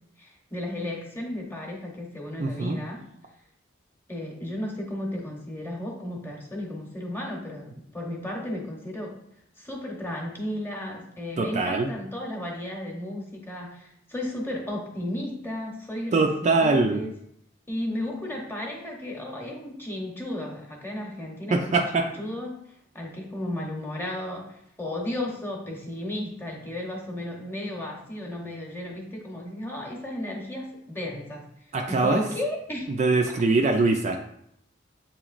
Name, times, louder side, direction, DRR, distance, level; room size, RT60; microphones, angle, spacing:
voice 1, 0.2-3.0 4.1-9.2 9.6-17.1 17.7-22.6 22.9-31.5 31.9-33.0, left 1 dB, 10° left, -1 dB, 0.8 m, -34 dB
voice 2, 2.4-2.8 11.4-11.9 16.1-17.0 21.5-22.1 31.7-32.2 32.9-34.2, right 3 dB, 35° right, 3 dB, 0.3 m, -23 dB
7.4 x 3.0 x 2.4 m, 0.72 s
head